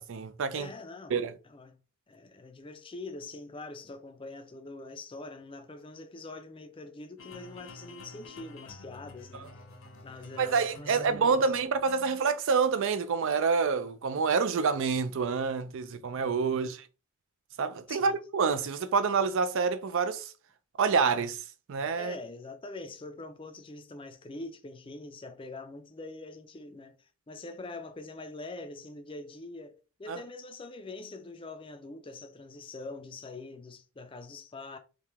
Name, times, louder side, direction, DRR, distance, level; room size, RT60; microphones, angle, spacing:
voice 1, 0.0-0.7 1.1-1.4 9.3-9.5 10.4-16.9 17.6-20.3 20.8-21.4 21.7-22.2 30.1-30.2, right 5 dB, 60° right, 0.4 m, -27 dB
voice 2, 0.5-1.2 1.4-1.8 2.1-9.5 10.0-11.5 16.5-16.7 17.9-18.2 22.0-34.8, left 2 dB, 25° left, 0.4 m, -44 dB
sound 1, 7.2-12.2, left 2 dB, 60° left, 0.8 m, -49 dB
3.1 x 2.8 x 3.4 m
head